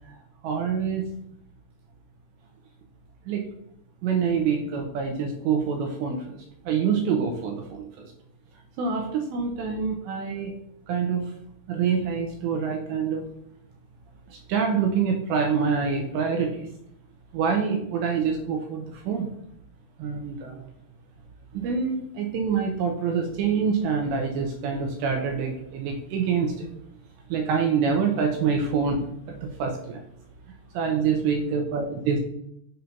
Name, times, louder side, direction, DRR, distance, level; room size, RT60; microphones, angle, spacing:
voice 1, 0.4-1.1 3.3-3.4 4.0-6.4 6.7-8.1 8.8-10.5 10.9-11.2 11.7-13.3 14.3-16.7 17.3-19.3 20.0-20.6 21.5-26.7 27.3-30.0 30.7-32.2, right 6 dB, 80° right, 3 dB, 2.7 m, -26 dB
7.8 x 2.7 x 5.7 m, 0.73 s
omnidirectional pair, 5.7 m